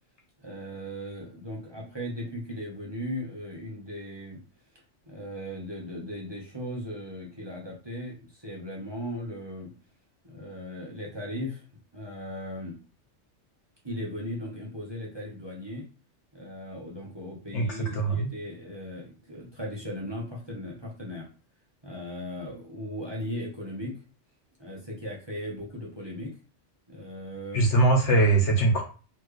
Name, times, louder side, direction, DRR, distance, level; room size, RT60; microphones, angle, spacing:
voice 1, 0.4-4.4 5.1-9.7 10.2-11.6 11.9-12.8 13.8-15.9 16.3-21.3 21.8-23.9 24.6-26.4 26.9-27.7, equal, 20° right, -4 dB, 1.1 m, -37 dB
voice 2, 17.5-18.3 27.5-28.8, right 2 dB, 70° left, 0 dB, 1.5 m, -22 dB
4.3 x 3.2 x 3.2 m, 0.35 s
omnidirectional pair, 1.3 m